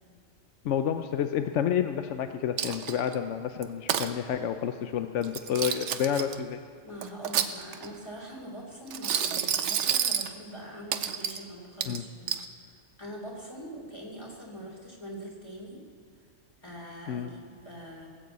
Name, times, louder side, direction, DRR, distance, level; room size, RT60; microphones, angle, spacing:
voice 1, 0.6-6.6 11.9-12.0 17.1-17.3, left 9 dB, 75° left, 8 dB, 0.9 m, -29 dB
Coin (dropping), 2.6-3.1 3.6-4.1 5.2-6.4 7.0-7.9 8.9-10.3 10.9-11.4 11.8-12.5, right 8 dB, 75° right, 1.0 m, -29 dB
voice 2, 6.8-15.8 16.6-18.1, right 1 dB, 20° left, -2 dB, 3.2 m, -43 dB
18.5 x 7.7 x 8.1 m, 2.2 s
omnidirectional pair, 1.2 m